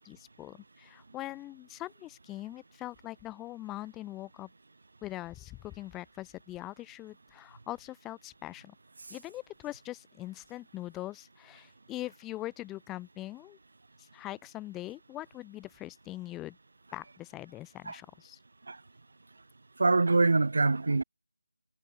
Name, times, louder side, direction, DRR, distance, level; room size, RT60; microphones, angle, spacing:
voice 1, 0.0-4.5 5.0-8.8 9.1-13.6 14.0-16.6 16.9-18.4, left 16 dB, 10° left, 3.6 m, -42 dB
voice 2, 19.8-21.0, right 3 dB, 55° right, 5.5 m, -24 dB
figure-of-eight pair, 160°, 0 cm